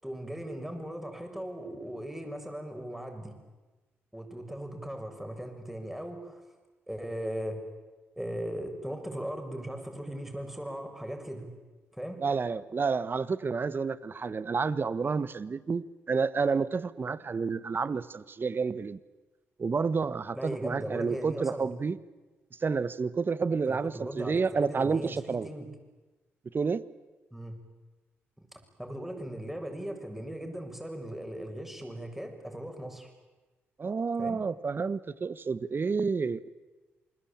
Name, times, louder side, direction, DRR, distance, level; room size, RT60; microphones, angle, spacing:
voice 1, 0.0-3.4 4.1-6.4 6.9-7.6 8.2-11.5 11.9-12.2 20.3-21.7 23.7-25.7 27.3-27.6 28.4-33.1 34.2-34.4, right 1 dB, 5° right, 4 dB, 7.2 m, -38 dB
voice 2, 12.2-19.0 19.6-22.0 22.6-25.5 26.5-26.8 33.8-36.5, right 5 dB, 40° right, 17 dB, 1.3 m, -30 dB
28.5 x 21.5 x 8.9 m, 1.2 s
supercardioid pair, 55°, 5 cm